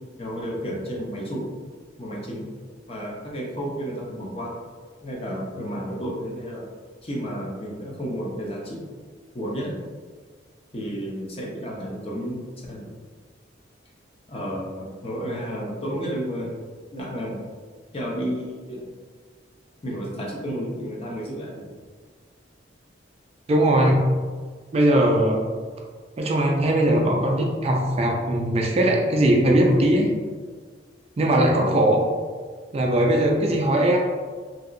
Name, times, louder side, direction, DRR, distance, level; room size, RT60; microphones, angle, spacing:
voice 1, 0.2-1.5 2.0-2.5 2.9-4.5 5.0-6.6 7.0-8.8 9.3-9.7 10.7-12.4 12.7-12.8 14.3-16.6 16.9-17.4 17.9-18.9 19.8-21.7, equal, 35° left, -3 dB, 0.6 m, -31 dB
voice 2, 23.5-24.0 24.7-25.4 26.2-30.2 31.2-32.0 32.7-34.0, right 1 dB, 35° right, 0 dB, 0.3 m, -20 dB
2.8 x 2.7 x 2.5 m, 1.5 s
head